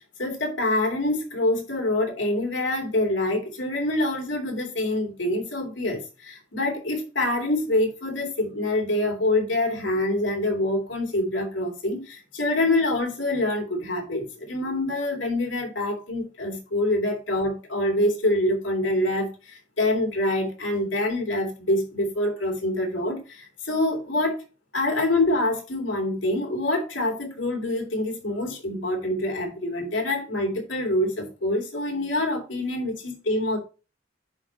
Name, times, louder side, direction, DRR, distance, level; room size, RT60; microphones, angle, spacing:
voice 1, 0.2-24.4 24.7-33.6, left 1 dB, 70° left, 2.7 m, -26 dB
10.5 x 4.5 x 2.8 m
head